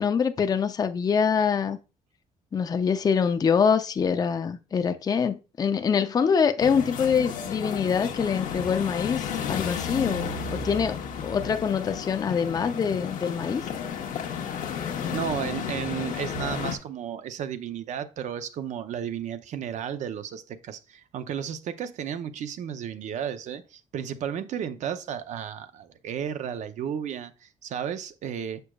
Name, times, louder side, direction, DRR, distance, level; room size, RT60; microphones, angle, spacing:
voice 1, 0.0-1.8 2.5-13.7, left 6 dB, 30° left, 0.5 m, -25 dB
sound 1, 6.6-16.8, left 7 dB, 85° left, 1.0 m, -32 dB
voice 2, 15.1-28.6, right 8 dB, 65° right, 0.6 m, -33 dB
6.7 x 6.1 x 2.3 m
cardioid pair, 145°, 13 cm